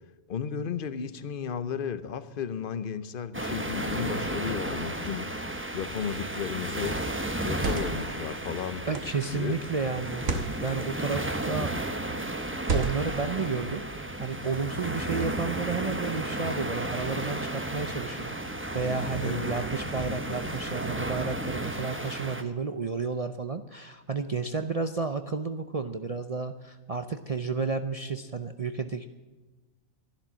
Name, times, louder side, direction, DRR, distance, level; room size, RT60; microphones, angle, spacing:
voice 1, 0.3-5.3 5.7-7.0 7.4-8.8 9.3-9.6 19.2-19.5, left 7 dB, 45° left, 13 dB, 0.9 m, -34 dB
sound 1, 3.3-22.4, right 1 dB, 10° right, 0.8 m, -33 dB
sound 2, 6.2-6.5 7.4-8.1 8.9-9.3 10.1-10.5 11.4-11.8 12.6-13.2, right 3 dB, 75° right, 1.7 m, -32 dB
voice 2, 8.9-11.8 12.7-13.8 14.2-18.4 18.7-29.1, right 4 dB, 45° right, 8 dB, 0.5 m, -32 dB
13.5 x 11.5 x 7.4 m, 1.2 s
omnidirectional pair, 1.4 m